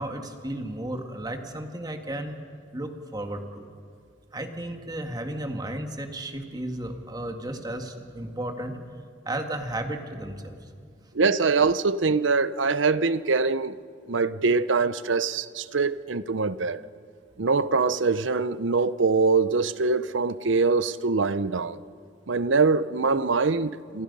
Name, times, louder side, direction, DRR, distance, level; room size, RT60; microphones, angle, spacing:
voice 1, 0.0-2.4 2.7-3.7 4.3-8.9 9.3-11.0, right 1 dB, 20° right, 1.9 m, -34 dB
voice 2, 11.1-13.8 14.1-16.8 17.4-21.8 22.3-24.0, right 4 dB, 75° right, 0.7 m, -23 dB
28.0 x 27.5 x 5.5 m
head